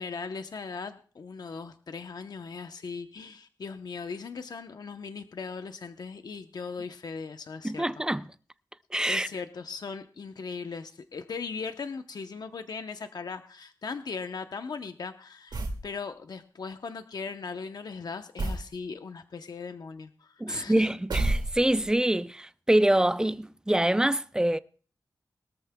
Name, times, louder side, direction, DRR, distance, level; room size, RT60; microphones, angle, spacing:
voice 1, 0.0-7.9 9.1-20.9, left 5 dB, 70° left, 0.8 m, -38 dB
voice 2, 7.6-8.2 8.9-9.3 20.4-24.6, right 1 dB, 10° right, 0.5 m, -25 dB
sound 1, 15.5-15.9 18.4-18.7 21.1-21.9, right 2 dB, 80° right, 2.1 m, -29 dB
22.0 x 13.5 x 2.2 m
wide cardioid pair, 95°, 7 cm